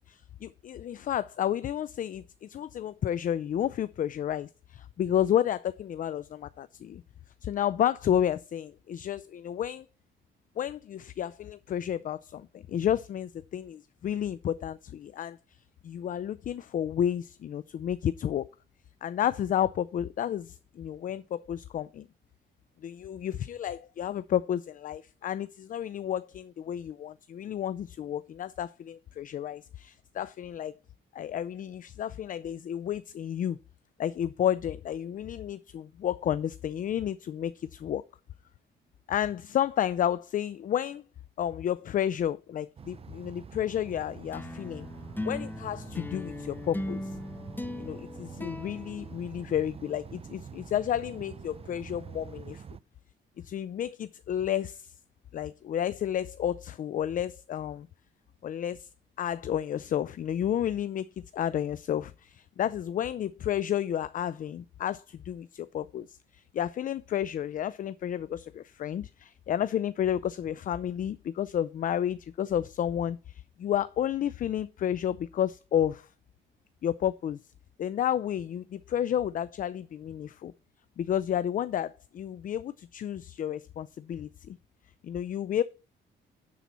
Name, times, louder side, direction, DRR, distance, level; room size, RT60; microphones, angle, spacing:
voice 1, 0.1-7.0 7.4-9.9 10.6-15.4 15.8-18.4 19.0-22.1 22.8-30.7 31.1-33.6 34.0-38.0 39.1-41.0 41.4-44.9 45.2-47.1 47.8-52.6 53.4-54.9 55.3-57.9 58.4-58.9 59.2-61.1 61.3-76.1 76.8-77.4 77.8-80.5 81.0-84.6 85.0-85.6, left 10 dB, 45° left, 0.4 m, -31 dB
sound 1, 42.8-52.8, right 6 dB, 30° right, 0.4 m, -46 dB
sound 2, 44.3-49.9, left 1 dB, 10° left, 0.7 m, -39 dB
10.0 x 4.2 x 5.6 m
cardioid pair, 90°, 20 cm